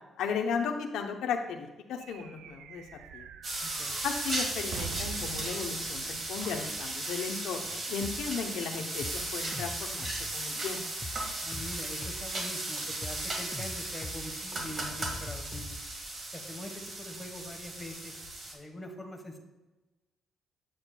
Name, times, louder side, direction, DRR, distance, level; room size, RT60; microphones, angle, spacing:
voice 1, 0.2-2.8 3.1-3.3 4.0-10.1 10.3-10.8, left 6 dB, 85° left, 3 dB, 0.6 m, -35 dB
sound 1, 2.0-7.7, right 7 dB, 80° right, 0.3 m, -45 dB
sound 2, 3.4-18.5, right 2 dB, 45° right, 1.7 m, -36 dB
voice 2, 3.6-4.0 11.4-15.8 16.3-18.1 18.5-19.4, left 1 dB, 10° left, 2 dB, 1.2 m, -43 dB
sound 3, 8.0-8.4 8.8-10.4 10.8-12.4 12.8-14.3 14.5-16.0, left 2 dB, 25° left, 0.6 m, -43 dB
7.9 x 7.5 x 2.2 m, 1.1 s
cardioid pair, 90°, 0 cm